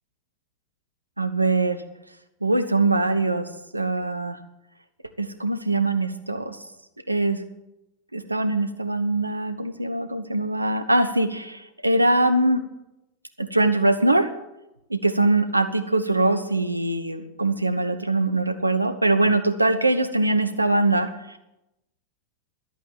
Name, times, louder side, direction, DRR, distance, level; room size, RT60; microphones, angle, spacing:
voice 1, 1.2-1.8 2.4-4.4 5.2-6.6 7.1-7.4 8.1-12.6 13.4-14.3 14.9-21.4, right 2 dB, 90° right, 11 dB, 1.0 m, -22 dB
12.0 x 8.5 x 9.1 m, 0.91 s
figure-of-eight pair, 90°, 0 cm